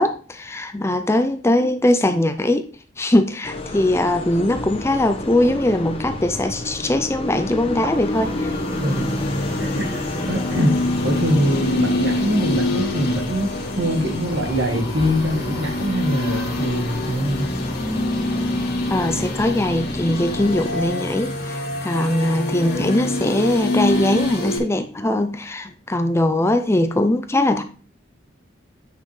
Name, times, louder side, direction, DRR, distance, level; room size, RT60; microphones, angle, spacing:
voice 1, 0.0-2.7 3.0-8.5 18.9-27.6, left 1 dB, 15° left, 0.4 m, -21 dB
sound 1, 3.4-20.9, left 1 dB, 30° left, 0.9 m, -31 dB
sound 2, 7.7-24.6, left 1 dB, 55° left, 2.1 m, -26 dB
voice 2, 8.8-9.2 9.6-17.5, equal, 65° right, 1.7 m, -23 dB
8.9 x 5.5 x 3.2 m
head